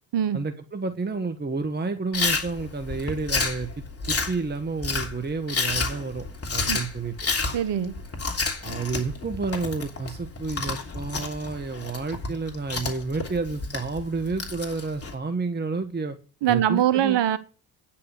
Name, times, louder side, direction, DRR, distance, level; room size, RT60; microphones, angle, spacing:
voice 1, 0.3-6.3 6.5-7.1 8.6-16.2 16.5-17.2, right 4 dB, 20° right, 7 dB, 1.3 m, -30 dB
Chewing mastication, 2.1-15.1, left 4 dB, 30° left, 3.0 m, -30 dB
voice 2, 7.5-7.9 16.4-17.4, right 10 dB, 60° right, 15 dB, 1.2 m, -22 dB
9.6 x 5.8 x 8.2 m, 0.36 s
hypercardioid pair, 55°, 49 cm